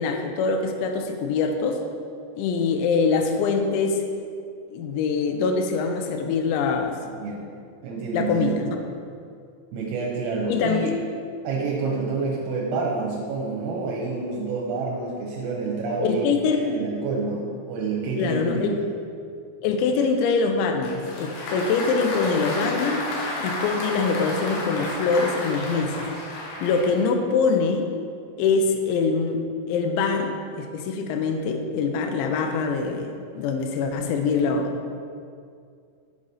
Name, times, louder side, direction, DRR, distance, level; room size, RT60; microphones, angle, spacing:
voice 1, 0.0-1.8 2.4-4.0 4.7-7.0 8.1-8.8 10.5-11.0 16.0-16.9 18.2-18.8 19.6-23.1 23.4-26.1 26.6-27.9 28.4-29.4 29.7-34.9, left 4 dB, 90° left, 4 dB, 2.7 m, -24 dB
voice 2, 7.2-7.5 7.8-8.6 9.7-10.9 11.5-18.9, right 4 dB, 90° right, -3 dB, 3.4 m, -28 dB
Applause, 20.8-27.2, left 1 dB, 70° left, 3.2 m, -32 dB
7.9 x 6.9 x 4.1 m, 2.3 s
omnidirectional pair, 5.9 m